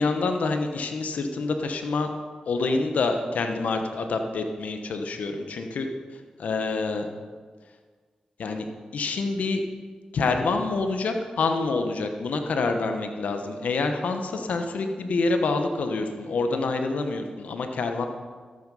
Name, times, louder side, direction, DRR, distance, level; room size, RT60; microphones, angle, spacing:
voice 1, 0.0-2.1 2.5-5.9 6.4-7.1 8.4-9.6 10.1-18.1, left 3 dB, 80° left, 5 dB, 1.0 m, -27 dB
13.0 x 7.9 x 5.5 m, 1.5 s
cardioid pair, 50°, 2 cm